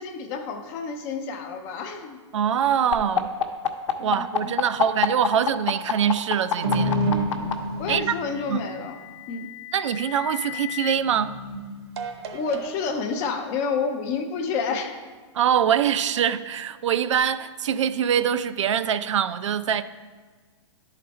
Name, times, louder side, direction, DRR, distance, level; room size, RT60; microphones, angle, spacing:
voice 1, 0.0-2.2 4.0-4.5 7.8-9.0 9.3-9.5 12.3-15.0, left 5 dB, 15° left, 0.3 m, -29 dB
voice 2, 2.3-3.3 4.0-6.9 7.9-8.2 8.5-8.6 9.7-11.3 15.3-19.8, right 9 dB, 75° right, 0.4 m, -24 dB
sound 1, 2.9-7.5 8.7-10.9, left 10 dB, 75° left, 0.8 m, -27 dB
sound 2, 6.6-8.6 10.9-13.2, right 1 dB, 55° right, 0.8 m, -28 dB
10.5 x 4.1 x 4.3 m
hypercardioid pair, 170°, 16 cm